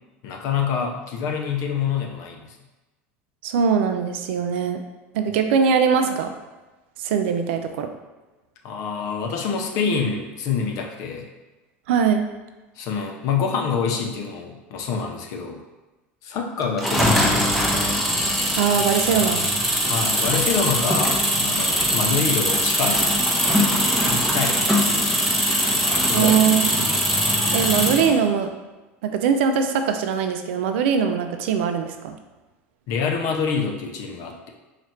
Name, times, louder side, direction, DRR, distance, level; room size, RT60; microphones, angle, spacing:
voice 1, 0.2-2.6 8.6-11.3 12.8-15.6 16.2-17.5 19.8-23.2 24.1-25.2 25.7-26.4 32.9-34.5, left 6 dB, 60° left, 2 dB, 0.5 m, -26 dB
voice 2, 3.4-4.8 5.1-6.3 7.0-7.9 11.9-12.2 18.6-19.5 26.1-26.9 27.5-28.5 29.0-32.1, right 7 dB, 80° right, 7 dB, 0.4 m, -21 dB
sound 1, 16.8-28.2, equal, ahead, 0.6 m, -21 dB
3.1 x 2.4 x 4.2 m, 1.1 s
supercardioid pair, 100°, 6 cm